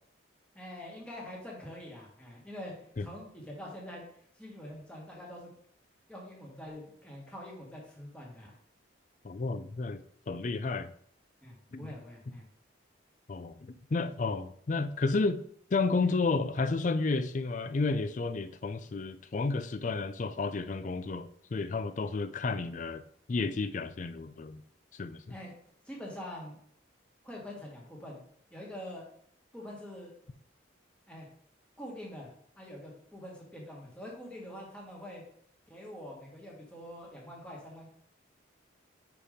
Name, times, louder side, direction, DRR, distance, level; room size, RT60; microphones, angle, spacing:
voice 1, 0.5-5.5 6.1-8.6 11.4-12.4 16.0-16.1 25.3-25.5 25.8-26.6 27.2-28.2 28.5-29.0 29.5-30.1 31.1-31.3 31.8-32.3 32.6-35.2 35.7-37.9, left 1 dB, 5° left, -3 dB, 1.5 m, -45 dB
voice 2, 9.2-10.9 11.7-11.9 12.3-12.4 13.3-15.4 15.7-23.0 23.3-24.6 24.9-25.2, left 3 dB, 40° left, 12 dB, 0.4 m, -31 dB
5.2 x 4.6 x 5.0 m, 0.63 s
head